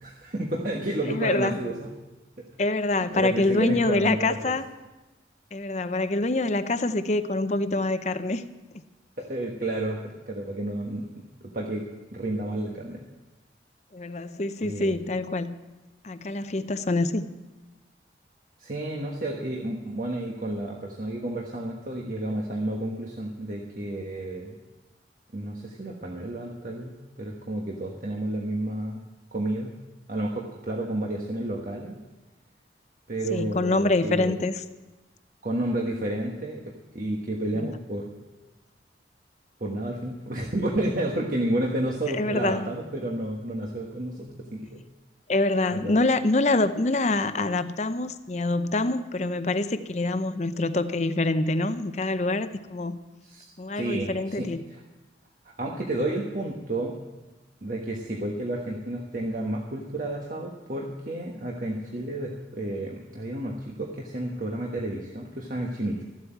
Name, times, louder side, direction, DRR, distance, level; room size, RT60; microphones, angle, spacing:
voice 1, 0.0-1.9 2.4-2.5 3.0-4.5 9.2-11.9 12.1-13.0 14.6-14.9 18.6-24.6 25.3-29.0 29.3-29.7 30.1-32.0 33.1-34.3 35.4-38.1 39.6-44.8 45.7-45.9 53.2-53.4 53.7-54.5 55.4-57.0 57.6-66.0, right 1 dB, 50° right, -1 dB, 1.3 m, -31 dB
voice 2, 1.1-1.7 2.6-4.7 5.5-8.4 13.9-15.5 16.0-17.2 33.3-34.5 37.5-37.6 42.1-42.7 45.3-53.0 53.6-54.6, left 2 dB, 40° left, 11 dB, 0.6 m, -25 dB
14.0 x 8.0 x 9.1 m, 1.1 s
head